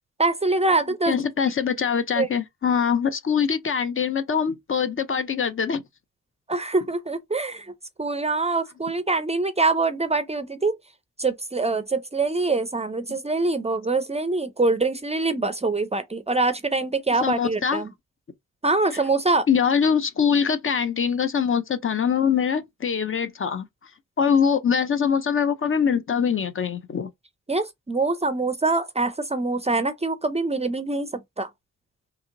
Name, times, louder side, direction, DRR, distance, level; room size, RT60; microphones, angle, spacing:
voice 1, 0.2-1.2 2.2-2.3 6.5-7.7 8.0-10.7 11.2-17.9 18.6-19.5 27.5-31.5, right 3 dB, 20° right, 0.4 m, -24 dB
voice 2, 1.1-5.8 17.2-17.8 19.5-23.6 24.2-27.1, left 7 dB, 45° left, 0.5 m, -23 dB
2.9 x 2.8 x 2.5 m
cardioid pair, 85°, 31 cm